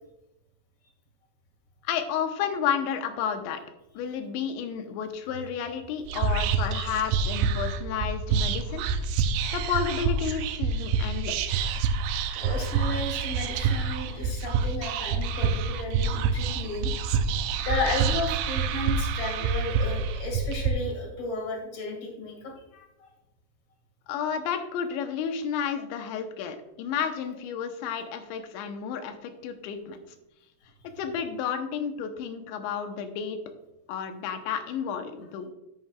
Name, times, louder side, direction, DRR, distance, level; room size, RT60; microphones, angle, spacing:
voice 1, 1.8-3.6 3.9-8.8 9.5-11.7 24.1-30.0 31.0-33.4 33.9-35.5, left 7 dB, 85° left, 7 dB, 3.1 m, -31 dB
Whispering, 6.0-20.7, right 5 dB, 80° right, 2.5 m, -27 dB
voice 2, 12.4-16.9 17.6-23.1, left 2 dB, 45° left, 1 dB, 1.7 m, -34 dB
10.5 x 9.2 x 2.3 m, 0.91 s
omnidirectional pair, 5.1 m